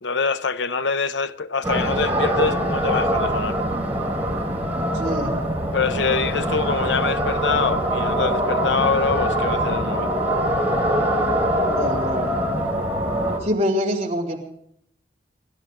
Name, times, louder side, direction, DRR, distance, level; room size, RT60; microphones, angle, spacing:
voice 1, 0.0-3.6 5.7-10.1, left 5 dB, 85° left, 0.8 m, -24 dB
sound 1, 1.6-13.4, equal, 10° right, 4.7 m, -23 dB
voice 2, 4.9-5.3 11.6-12.4 13.4-14.4, equal, 35° right, 4.3 m, -25 dB
29.5 x 13.0 x 3.7 m
head